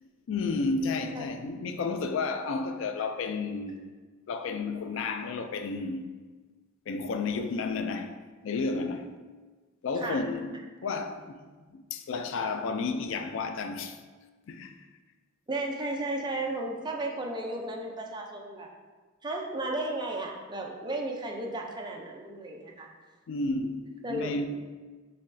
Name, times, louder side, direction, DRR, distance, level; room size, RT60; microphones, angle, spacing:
voice 1, 0.0-3.9 4.3-6.1 6.9-8.2 8.4-9.1 9.8-14.0 14.5-14.8 23.3-24.5, left 4 dB, 70° left, 0.3 m, -32 dB
voice 2, 15.5-18.7 19.2-22.9 24.0-24.5, right 2 dB, 20° right, 0.5 m, -34 dB
5.6 x 3.1 x 2.6 m
head